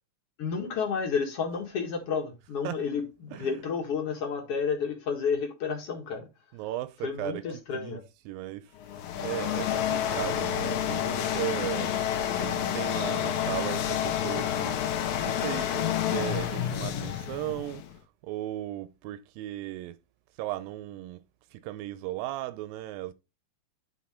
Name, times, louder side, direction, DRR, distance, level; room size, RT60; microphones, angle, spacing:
voice 1, 0.4-6.3 7.0-8.0 9.2-9.3 10.3-10.5, left 6 dB, 50° left, 2.3 m, -31 dB
voice 2, 6.5-7.4 7.7-8.0 8.3-8.7 9.2-12.0 12.4-17.8 18.2-20.0 20.4-21.2 21.5-23.1, right 15 dB, 85° right, 2.3 m, -36 dB
sound 1, 8.8-18.0, left 10 dB, 70° left, 2.1 m, -29 dB
10.0 x 4.6 x 4.3 m
omnidirectional pair, 4.0 m